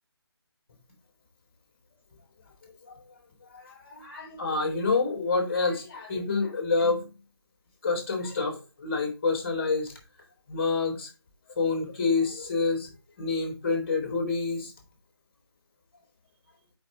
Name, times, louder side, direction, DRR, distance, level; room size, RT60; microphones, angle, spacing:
voice 1, 2.6-3.0 3.5-7.1 7.8-9.9 10.5-11.1 11.5-12.9 13.2-14.7, left 4 dB, 30° left, 1 dB, 3.2 m, -28 dB
6.1 x 5.5 x 3.7 m, 0.31 s
figure-of-eight pair, 165°, 14 cm